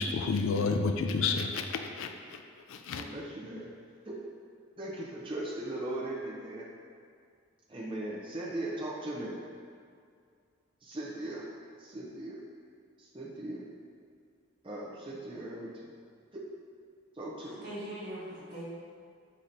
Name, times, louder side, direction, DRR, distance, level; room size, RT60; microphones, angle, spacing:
voice 1, 0.0-2.4 2.7-3.0, left 4 dB, 75° left, 5 dB, 0.3 m, -30 dB
voice 2, 3.0-3.7 4.0-4.2 4.8-6.7 7.7-9.4 10.8-11.5 11.8-12.4 13.0-13.6 14.6-15.9 16.3-16.4 17.1-17.7, right 1 dB, 25° right, -5 dB, 0.6 m, -38 dB
voice 3, 17.4-18.6, right 1 dB, 50° right, -8 dB, 1.2 m, -41 dB
4.8 x 4.2 x 2.7 m, 2.2 s
head